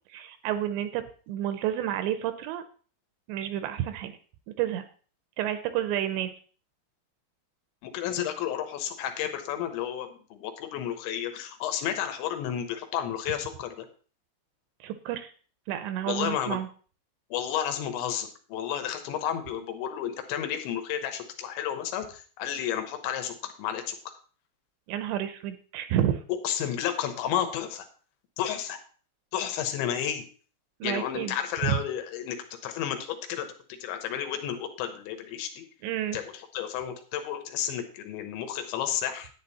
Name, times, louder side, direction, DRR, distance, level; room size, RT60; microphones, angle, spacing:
voice 1, 0.1-2.6 3.3-4.1 4.5-4.8 5.4-6.3 14.8-15.3 15.7-16.7 24.9-26.2 30.8-31.4 31.6-31.8 35.8-36.2, right 11 dB, 80° right, 10 dB, 2.7 m, -30 dB
voice 2, 7.8-13.9 16.1-16.6 17.3-24.0 26.4-27.9 28.4-28.8 29.3-30.3 30.8-32.4 32.6-33.5 33.8-35.6 36.1-36.2 36.5-39.3, left 10 dB, 80° left, 7 dB, 3.3 m, -32 dB
10.5 x 9.0 x 4.1 m, 0.40 s
omnidirectional pair, 5.5 m